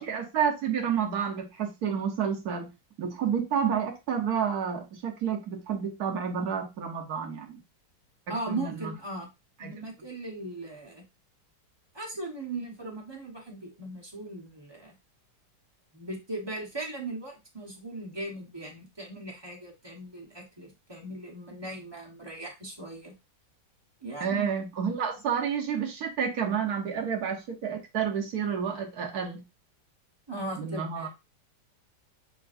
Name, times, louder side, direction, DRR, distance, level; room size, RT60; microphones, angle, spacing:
voice 1, 0.0-2.7 3.0-7.6 8.3-8.9 9.6-9.7 24.2-29.4 30.6-31.1, right 7 dB, 65° right, 2 dB, 1.6 m, -30 dB
voice 2, 8.3-9.3 9.6-11.0 11.9-14.9 15.9-23.1 24.0-24.5 30.3-31.1, right 2 dB, 15° right, -1 dB, 1.1 m, -38 dB
6.8 x 3.0 x 2.6 m, 0.25 s
omnidirectional pair, 1.9 m